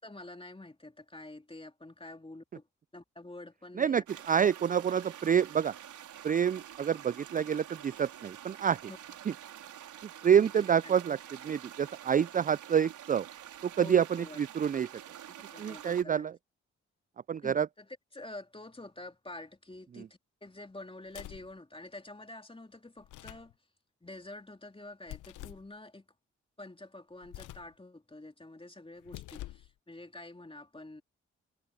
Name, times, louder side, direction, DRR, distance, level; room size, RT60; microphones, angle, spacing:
voice 1, 0.0-2.7 2.9-4.0 8.9-9.0 10.4-11.0 13.8-14.4 15.5-16.3 17.4-17.9 18.1-23.5 24.0-26.1 26.6-31.0, left 2 dB, 15° left, 3.0 m, -48 dB
voice 2, 3.8-5.7 6.2-8.8 9.3-9.4 10.2-13.3 13.6-14.9 15.6-16.4 17.3-17.7 19.9-20.1, right 8 dB, 30° right, 0.4 m, -27 dB
sound 1, 4.1-16.0, right 11 dB, 75° right, 4.5 m, -48 dB
sound 2, 21.1-21.5 23.0-23.5 25.1-25.7 27.2-27.7 29.0-29.7, left 15 dB, 75° left, 0.9 m, -46 dB
hypercardioid pair, 40°, 31 cm